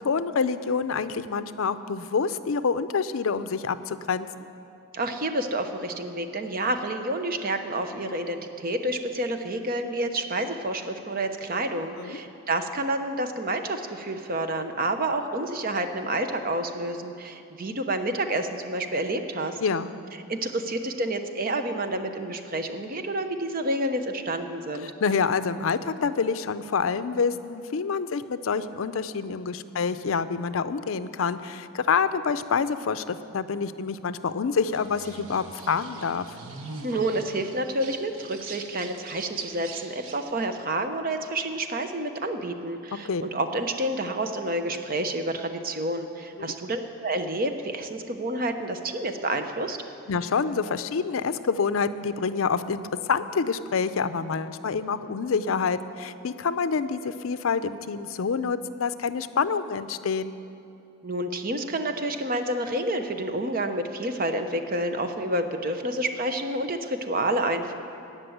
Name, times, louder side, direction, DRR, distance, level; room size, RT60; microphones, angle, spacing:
voice 1, 0.0-4.5 12.0-12.2 19.6-19.9 24.8-36.3 43.0-43.2 46.4-46.5 50.1-60.3, left 5 dB, 75° left, 12 dB, 0.5 m, -27 dB
voice 2, 4.9-19.6 20.3-24.9 36.8-49.8 61.0-67.8, right 1 dB, 40° right, 7 dB, 0.8 m, -29 dB
sound 1, 34.7-40.3, right 3 dB, 80° right, 1.1 m, -43 dB
16.0 x 6.0 x 9.2 m, 2.7 s
head